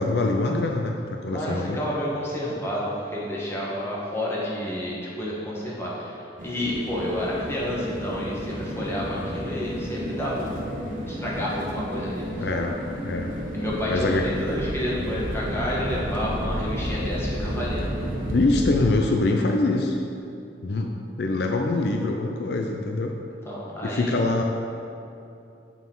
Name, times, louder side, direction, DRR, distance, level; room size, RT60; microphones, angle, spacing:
voice 1, 0.0-1.8 12.4-12.8 13.0-13.3 13.9-14.3 18.3-20.0 20.6-23.1 23.8-24.4, left 2 dB, 65° left, 2 dB, 0.5 m, -24 dB
voice 2, 1.3-10.6 11.1-12.5 13.6-17.9 23.4-24.2, left 1 dB, 15° left, -6 dB, 1.2 m, -30 dB
sound 1, 6.4-18.7, equal, 50° right, 0.9 m, -31 dB
7.1 x 5.9 x 3.8 m, 2.7 s
head